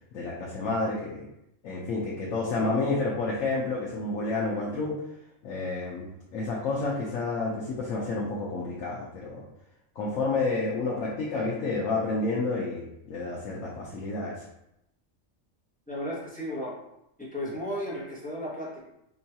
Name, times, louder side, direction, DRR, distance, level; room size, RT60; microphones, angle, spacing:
voice 1, 0.1-1.2 1.6-5.0 5.4-9.4 10.0-14.4, left 3 dB, 85° left, -4 dB, 1.0 m, -30 dB
voice 2, 15.9-16.7 17.2-18.8, equal, 10° left, -8 dB, 0.7 m, -34 dB
3.8 x 2.3 x 2.7 m, 0.83 s
omnidirectional pair, 1.4 m